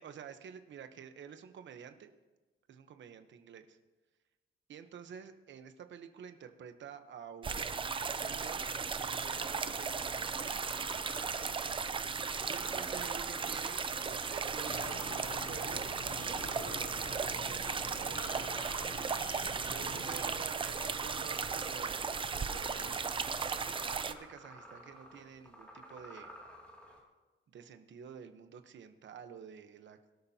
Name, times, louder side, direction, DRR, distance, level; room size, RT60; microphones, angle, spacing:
voice 1, 0.0-2.1 2.7-3.8 4.7-8.6 9.0-10.6 12.4-18.6 19.7-22.0 22.3-23.2 23.9-26.3 27.5-30.0, right 7 dB, 60° right, 8 dB, 1.0 m, -50 dB
sound 1, 7.4-24.1, right 5 dB, 25° right, 0.5 m, -36 dB
sound 2, 9.3-27.0, equal, 5° left, 2.5 m, -53 dB
sound 3, 14.6-20.4, left 2 dB, 45° left, 3.7 m, -47 dB
21.5 x 12.5 x 2.9 m, 1.2 s
wide cardioid pair, 180°, 21 cm